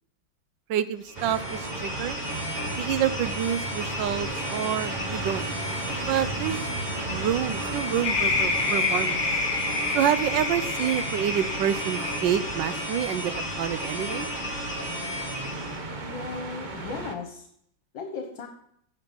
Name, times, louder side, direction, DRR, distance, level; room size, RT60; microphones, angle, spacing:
voice 1, 0.7-2.2 2.8-5.5 6.1-6.7 7.1-9.3 9.9-13.3 13.6-14.3, right 10 dB, 70° right, 14 dB, 1.3 m, -28 dB
sound 1, 1.0-15.8, left 1 dB, 5° left, 5.8 m, -34 dB
sound 2, 1.2-17.1, right 2 dB, 30° right, 1.0 m, -35 dB
sound 3, 8.0-12.6, left 4 dB, 40° left, 1.1 m, -28 dB
voice 2, 16.0-17.5 17.9-18.5, left 4 dB, 70° left, 3 dB, 2.0 m, -36 dB
15.5 x 7.1 x 5.3 m, 0.70 s
omnidirectional pair, 2.2 m